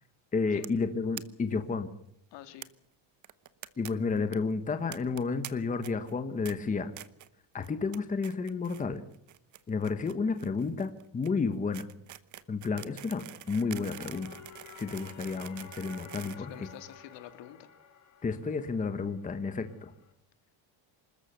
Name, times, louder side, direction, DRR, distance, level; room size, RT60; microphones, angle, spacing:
voice 1, 0.3-1.9 3.8-6.9 7.5-9.0 9.7-11.8 12.5-14.4 14.8-16.5 18.2-19.9, left 4 dB, 15° left, 8 dB, 1.3 m, -31 dB
sound 1, 0.6-0.8 1.1-1.2 1.5-1.6 1.8-1.9 2.6-2.7 3.2-3.9 4.2-4.4 4.9-5.5 5.8-6.1 6.4-6.5 7.0-7.3 7.6-8.8 9.1-17.2, right 12 dB, 35° right, 1.0 m, -46 dB
voice 2, 2.3-2.7 16.4-17.7, left 12 dB, 60° left, 9 dB, 2.3 m, -47 dB
sound 2, 13.2-20.1, left 8 dB, 35° left, 2.6 m, -53 dB
26.0 x 14.0 x 7.8 m, 0.74 s
cardioid pair, 155°, 49 cm